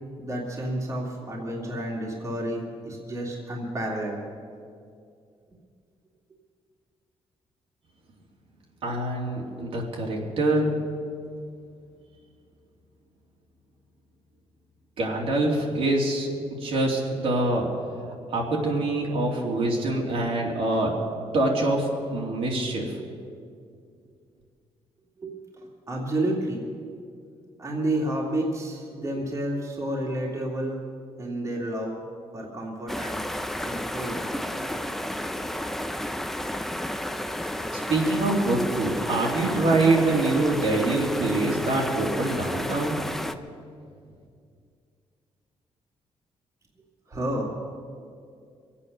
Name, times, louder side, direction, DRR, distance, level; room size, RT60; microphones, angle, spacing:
voice 1, 0.2-4.2 25.2-26.7 27.6-30.8 31.2-32.0 32.3-33.3 33.6-34.2 34.7-34.8 47.1-47.6, right 1 dB, 30° right, -2 dB, 2.4 m, -30 dB
voice 2, 8.8-10.8 15.0-16.3 16.6-17.7 18.0-20.9 21.3-23.0 37.9-43.0, right 2 dB, 70° right, -2 dB, 2.9 m, -25 dB
sound 1, 32.9-43.3, left 1 dB, 5° left, 0.6 m, -32 dB
24.0 x 8.6 x 6.6 m, 2.3 s
cardioid pair, 145°, 10 cm